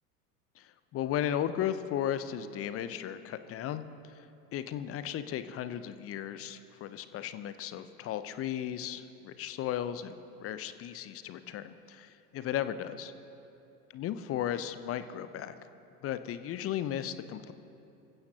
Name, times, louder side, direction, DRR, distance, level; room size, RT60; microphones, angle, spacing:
voice 1, 0.6-4.3 4.5-13.1 13.9-15.6 16.0-17.5, left 10 dB, 30° left, 12 dB, 0.7 m, -35 dB
24.5 x 15.5 x 2.9 m, 2.7 s
figure-of-eight pair, 75°, 45 cm